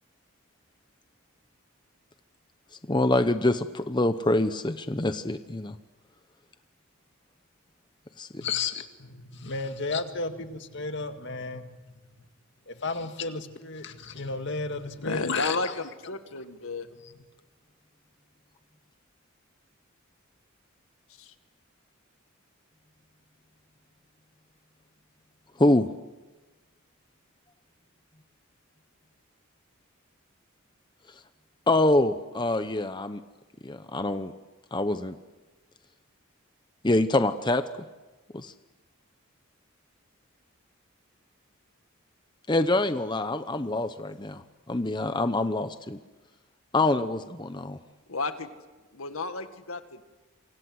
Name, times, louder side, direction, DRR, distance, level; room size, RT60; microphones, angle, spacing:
voice 1, 2.9-5.8 8.2-8.4 25.6-25.9 31.7-33.2 33.6-34.3 34.7-35.2 36.8-37.6 38.3-38.5 42.5-44.4 44.7-46.0 46.7-47.8, left 2 dB, 20° left, 10 dB, 0.8 m, -25 dB
voice 2, 8.4-12.0 12.7-15.7, left 4 dB, 55° left, 7 dB, 2.1 m, -33 dB
voice 3, 15.0-16.9 21.2-21.3 48.1-48.5 48.9-50.1, left 3 dB, 80° left, 9 dB, 1.9 m, -32 dB
29.0 x 25.0 x 7.9 m, 1.2 s
head